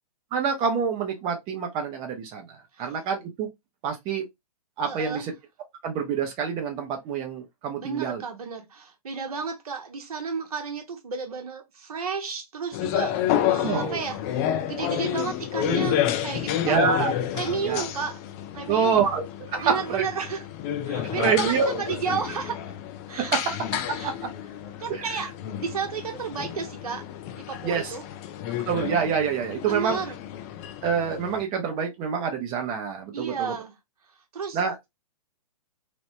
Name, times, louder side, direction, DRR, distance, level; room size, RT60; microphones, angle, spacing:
voice 1, 0.3-3.5 3.8-4.2 4.8-5.3 5.8-8.2 13.6-14.0 16.6-17.1 17.4-17.8 18.7-19.2 19.5-20.1 21.2-21.7 23.2-23.6 23.9-24.3 24.9-25.3 27.6-27.9 28.7-30.0 30.8-33.5 34.5-34.7, right 6 dB, 25° right, 0.7 m, -26 dB
voice 2, 4.8-5.3 7.8-13.2 13.5-16.8 17.3-18.2 18.5-19.1 19.6-20.5 20.9-22.6 23.1-23.3 23.9-24.1 24.8-25.3 25.6-27.0 27.4-28.0 29.6-30.2 33.1-33.7 34.3-34.6, right 5 dB, 70° right, 1.0 m, -32 dB
sound 1, 12.7-31.4, left 11 dB, 25° left, 0.4 m, -30 dB
3.1 x 2.0 x 2.9 m
hypercardioid pair, 125°, 20 cm